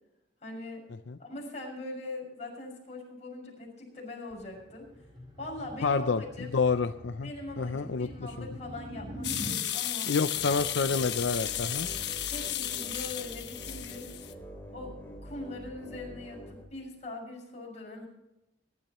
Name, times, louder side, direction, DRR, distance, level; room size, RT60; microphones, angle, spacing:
voice 1, 0.4-0.9 1.2-4.9 5.4-6.5 7.2-10.2 12.3-14.1 14.7-15.0 15.2-18.1, left 2 dB, 40° left, -1 dB, 6.4 m, -42 dB
sound 1, 4.3-9.6, equal, 25° right, 3.9 m, -44 dB
voice 2, 5.8-6.2 6.5-7.3 7.6-8.1 8.4-8.5 10.0-11.9, left 4 dB, 85° left, 9 dB, 0.6 m, -28 dB
sound 2, 9.2-14.3, left 12 dB, 65° left, 1.2 m, -34 dB
sound 3, 10.3-16.6, equal, 10° left, 3.6 m, -45 dB
23.5 x 12.0 x 3.1 m, 0.93 s
head